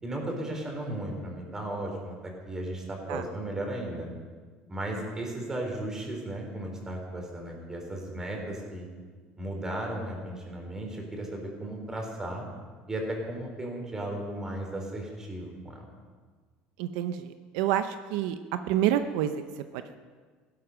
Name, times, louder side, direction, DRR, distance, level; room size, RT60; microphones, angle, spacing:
voice 1, 0.0-4.1 4.7-8.9 9.4-12.4 12.9-15.9, right 1 dB, 15° right, 1 dB, 3.9 m, -35 dB
voice 2, 16.8-18.4 18.7-20.0, right 11 dB, 85° right, 9 dB, 0.8 m, -28 dB
15.5 x 12.0 x 6.3 m, 1.5 s
cardioid pair, 140°, 3 cm